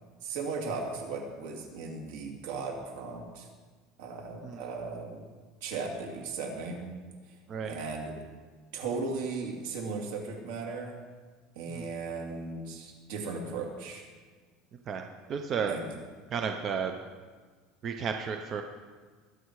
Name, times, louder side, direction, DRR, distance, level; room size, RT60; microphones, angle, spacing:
voice 1, 0.2-3.5 4.0-5.2 5.6-6.9 7.3-7.4 7.6-8.1 8.7-11.0 11.5-14.1 15.7-15.8, right 4 dB, 80° right, 1 dB, 2.9 m, -36 dB
voice 2, 15.3-15.7 16.3-16.9 17.8-18.6, right 6 dB, 30° right, 5 dB, 0.7 m, -32 dB
21.5 x 7.9 x 4.8 m, 1.5 s
cardioid pair, 165°, 0 cm